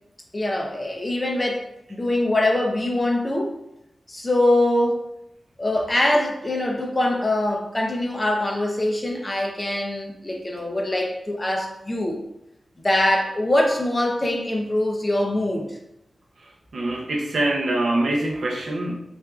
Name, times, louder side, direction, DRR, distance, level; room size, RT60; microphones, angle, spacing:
voice 1, 0.3-1.6 1.9-3.5 4.1-5.0 5.6-12.2 12.8-15.7, left 1 dB, 20° left, 1 dB, 0.6 m, -23 dB
voice 2, 16.4-18.9, right 1 dB, 65° right, 0 dB, 0.6 m, -24 dB
5.8 x 2.5 x 2.3 m, 0.83 s
wide cardioid pair, 130°, 0 cm